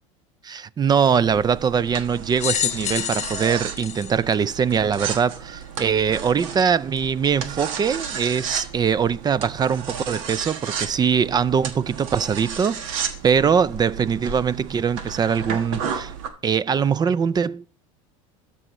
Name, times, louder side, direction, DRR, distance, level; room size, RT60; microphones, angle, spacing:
voice 1, 0.4-16.1 16.4-17.7, right 7 dB, 25° right, 0.4 m, -22 dB
sound 1, 1.2-16.3, right 7 dB, 75° right, 1.4 m, -33 dB
sound 2, 2.4-5.0 5.7-5.8 7.0-7.1, left 11 dB, 40° left, 0.8 m, -28 dB
13.0 x 6.8 x 3.0 m
hypercardioid pair, 90°, 17 cm